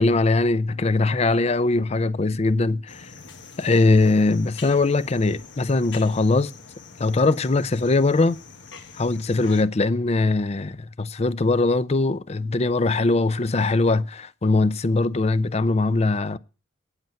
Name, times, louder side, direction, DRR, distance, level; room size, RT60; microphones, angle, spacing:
voice 1, 0.0-3.0 3.6-6.5 7.0-8.4 9.0-16.4, left 3 dB, 35° left, 0.5 m, -21 dB
sound 1, 2.9-9.6, left 5 dB, 85° left, 1.5 m, -44 dB
9.2 x 8.2 x 7.6 m
head